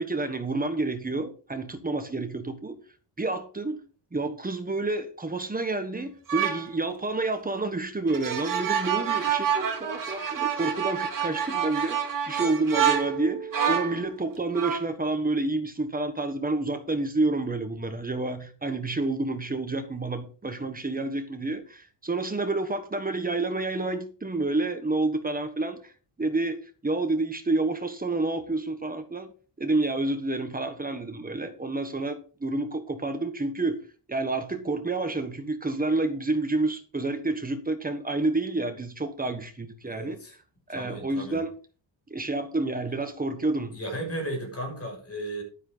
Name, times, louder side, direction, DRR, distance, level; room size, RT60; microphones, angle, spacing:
voice 1, 0.0-2.8 3.2-3.8 4.1-12.0 12.2-25.9 26.2-29.3 29.6-33.8 34.1-40.2 40.7-41.5 42.1-43.7, right 2 dB, 20° right, 1.4 m, -29 dB
sound 1, 6.3-6.7 8.1-14.0 14.6-14.9, right 8 dB, 40° right, 2.5 m, -27 dB
voice 2, 39.8-40.3 40.7-41.4 43.7-45.4, right 1 dB, 30° left, 6.5 m, -35 dB
11.0 x 9.9 x 4.0 m
wide cardioid pair, 160°, 47 cm